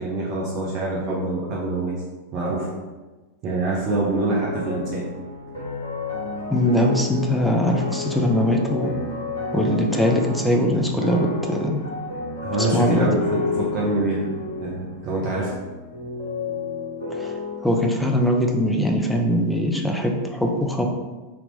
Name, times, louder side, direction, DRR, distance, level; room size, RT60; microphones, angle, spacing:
voice 1, 0.0-1.9 2.3-2.7 3.4-5.0 12.4-14.3 14.6-15.5, right 2 dB, 40° right, -5 dB, 0.8 m, -25 dB
sound 1, 3.8-18.0, left 3 dB, 75° left, 1.1 m, -31 dB
voice 2, 6.5-8.9 9.5-11.7 12.7-13.1 17.2-17.3 17.6-20.9, equal, 5° left, 1 dB, 0.6 m, -21 dB
3.5 x 2.9 x 3.9 m, 1.2 s
figure-of-eight pair, 90°, 0 cm